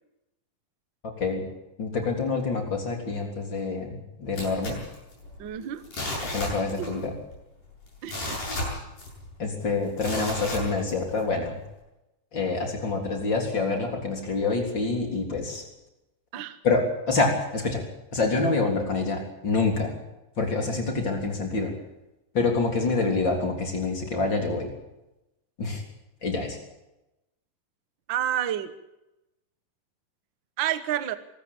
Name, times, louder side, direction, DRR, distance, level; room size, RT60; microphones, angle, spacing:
voice 1, 1.8-4.8 6.3-7.1 9.4-11.6 12.3-15.6 16.6-17.8 18.1-20.0 20.4-21.7 22.3-24.7 25.6-25.8 26.2-26.6, left 3 dB, 35° left, 2 dB, 4.1 m, -26 dB
sound 1, 4.4-5.5 5.8-7.0 7.3-7.4 7.9-9.3 10.0-11.2 11.7-11.8, left 1 dB, 70° left, 9.4 m, -33 dB
voice 2, 5.4-5.8 6.8-6.9 8.0-8.6 16.3-16.6 28.1-28.7 30.6-31.1, right 11 dB, 80° right, 12 dB, 1.0 m, -29 dB
24.0 x 13.5 x 8.7 m, 0.95 s
omnidirectional pair, 3.9 m